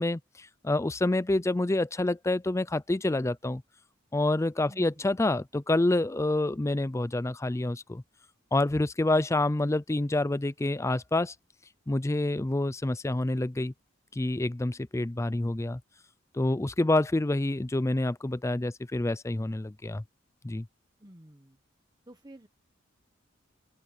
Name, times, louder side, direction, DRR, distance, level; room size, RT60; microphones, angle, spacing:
voice 1, 0.0-3.6 4.1-8.0 8.5-11.3 11.9-13.7 14.2-15.8 16.3-20.0 20.4-20.7, left 2 dB, 15° left, 0.5 m, -27 dB
voice 2, 4.6-5.3 21.0-21.6 22.1-22.5, right 1 dB, 20° right, 1.2 m, -52 dB
open air
head